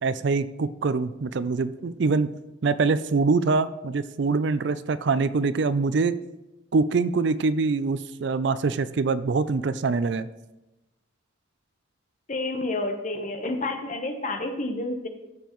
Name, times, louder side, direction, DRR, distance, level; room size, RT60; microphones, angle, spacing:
voice 1, 0.0-2.3 2.6-6.2 6.7-10.3, right 4 dB, 55° right, 14 dB, 0.4 m, -24 dB
voice 2, 12.3-15.1, left 2 dB, 35° left, 5 dB, 1.0 m, -29 dB
15.5 x 7.1 x 3.1 m, 1.0 s
head